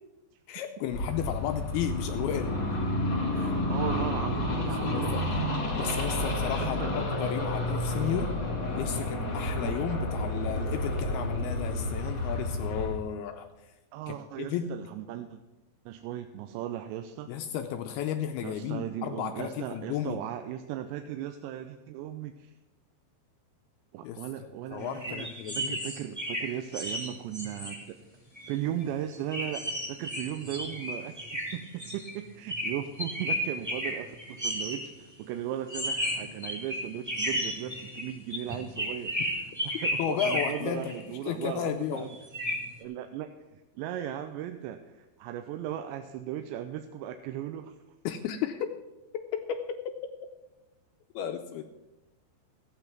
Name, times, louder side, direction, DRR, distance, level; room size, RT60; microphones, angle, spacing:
voice 1, 0.5-3.0 3.4-3.6 4.4-5.3 5.8-8.3 8.8-13.5 14.1-14.7 17.3-20.2 24.0-24.2 24.7-25.8 40.0-41.0 41.3-42.1 48.1-48.8 49.5-49.6 51.2-51.6, left 9 dB, 85° left, 6 dB, 2.3 m, -33 dB
sound 1, 0.9-13.0, left 1 dB, 35° left, 3.2 m, -30 dB
voice 2, 3.7-5.1 6.6-7.0 9.6-9.9 13.9-15.4 15.9-17.3 18.4-22.5 23.9-28.0 28.5-42.1 42.8-47.8, right 11 dB, 90° right, 7 dB, 2.9 m, -37 dB
sound 2, 24.8-27.8 28.4-28.5 28.8-28.9 29.3-32.1 32.5-34.8 35.7-40.9 42.0-42.6, equal, 5° right, 2.0 m, -33 dB
14.5 x 8.9 x 5.9 m, 1.0 s
omnidirectional pair, 5.0 m